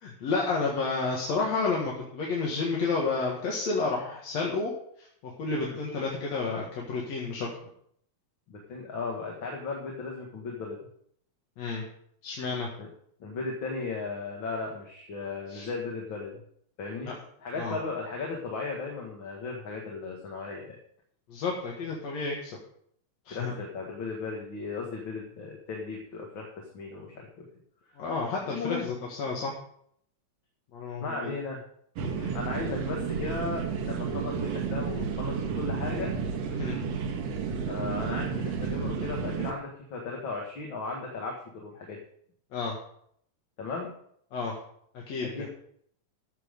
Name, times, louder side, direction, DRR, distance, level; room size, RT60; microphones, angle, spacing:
voice 1, 0.0-4.7 5.0-7.5 11.6-11.8 12.2-12.7 15.5-15.7 17.0-17.1 17.6-17.8 21.3-22.6 23.3-23.5 28.0-29.5 30.7-31.4 32.1-32.3 36.5-36.8 42.5-42.8 44.3-44.5 45.1-45.5, left 4 dB, 65° left, -2 dB, 2.9 m, -31 dB
voice 2, 8.5-10.8 12.8-12.9 13.2-16.4 16.8-17.1 17.4-20.8 23.3-27.5 28.4-28.9 31.0-31.6 32.3-36.1 37.7-42.0 43.6-43.9 45.2-45.5, left 4 dB, 45° left, -1 dB, 2.1 m, -36 dB
sound 1, 32.0-39.5, right 6 dB, 65° right, 2.3 m, -31 dB
13.5 x 7.5 x 5.2 m, 0.66 s
omnidirectional pair, 3.4 m